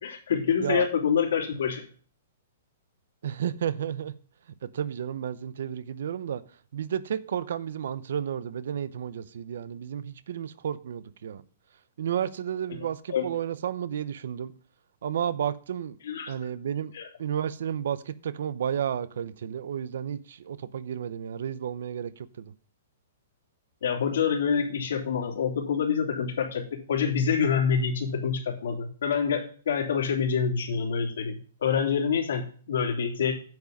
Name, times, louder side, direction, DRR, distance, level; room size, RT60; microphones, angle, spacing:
voice 1, 0.0-1.8 13.1-13.3 16.0-16.3 16.9-17.1 23.8-33.3, left 6 dB, 65° left, 3.0 m, -26 dB
voice 2, 3.2-4.1 4.6-6.4 6.7-11.4 12.0-14.5 15.0-16.0 16.3-16.9 17.2-22.5, right 9 dB, 60° right, 0.7 m, -32 dB
9.3 x 7.4 x 5.3 m
hypercardioid pair, 180°, 0 cm